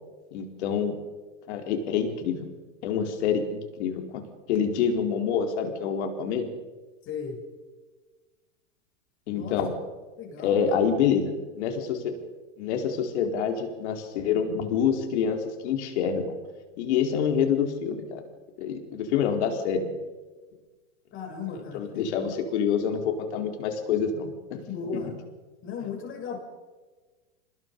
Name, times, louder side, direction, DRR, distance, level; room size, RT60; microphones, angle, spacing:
voice 1, 0.3-1.0 1.5-2.5 2.8-4.2 4.5-6.5 9.3-9.7 10.4-12.1 12.6-16.4 16.8-18.2 18.6-19.9 21.5-24.6 24.9-25.0, left 7 dB, 65° left, 4 dB, 4.6 m, -27 dB
voice 2, 7.0-7.4 9.3-9.6 10.2-10.8 21.1-22.3 24.7-25.1 25.6-26.4, left 5 dB, 35° left, 2 dB, 7.6 m, -36 dB
26.5 x 20.5 x 5.6 m, 1.3 s
hypercardioid pair, 120°, 37 cm